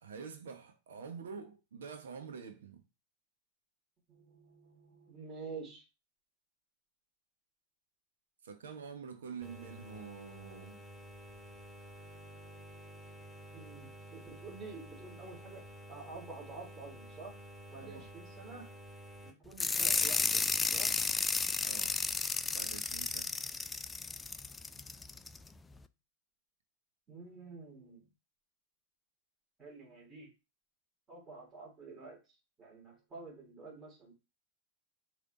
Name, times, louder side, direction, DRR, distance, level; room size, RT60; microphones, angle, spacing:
voice 1, 0.0-2.8 8.4-10.8 17.8-18.1 21.6-22.0 22.5-23.3, right 6 dB, 65° right, 1.2 m, -47 dB
voice 2, 4.1-5.8 12.0-17.4 17.7-18.7 19.2-20.9 24.7-25.4 27.1-28.1 29.6-30.3 31.1-32.2 32.6-34.1, right 4 dB, 20° right, 3.4 m, -50 dB
sound 1, 9.4-19.3, right 1 dB, 5° right, 2.5 m, -51 dB
sound 2, 19.6-25.4, left 4 dB, 15° left, 0.4 m, -33 dB
6.8 x 3.5 x 3.9 m
figure-of-eight pair, 90°, 0 cm